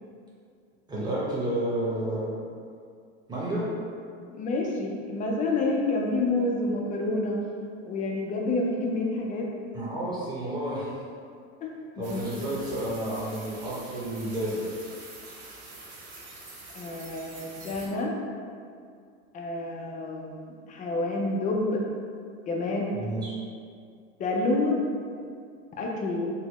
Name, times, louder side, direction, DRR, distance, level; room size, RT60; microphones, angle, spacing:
voice 1, 0.9-2.4 3.3-3.7 9.7-10.9 12.0-14.6 22.9-23.3, right 1 dB, 10° right, -7 dB, 0.9 m, -31 dB
voice 2, 4.4-7.4 7.9-9.5 11.6-11.7 12.0-12.2 16.7-18.1 19.3-21.8 22.5-22.9 24.2-24.8 25.7-26.3, left 2 dB, 25° left, -1 dB, 0.3 m, -28 dB
sound 1, 12.0-17.9, right 2 dB, 65° right, 1.0 m, -45 dB
4.0 x 2.1 x 3.0 m, 2.3 s
supercardioid pair, 125°, 35 cm